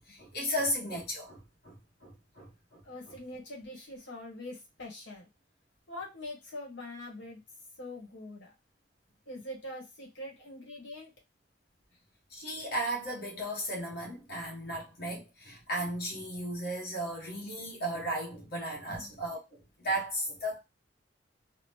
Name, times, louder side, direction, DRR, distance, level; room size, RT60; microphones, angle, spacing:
voice 1, 0.0-3.2 12.3-20.6, right 1 dB, 55° left, 1.1 m, -35 dB
voice 2, 2.8-5.2 5.9-7.4 7.8-8.5 9.3-11.1 18.9-19.1, left 1 dB, 80° left, 1.2 m, -43 dB
2.9 x 2.0 x 3.2 m
head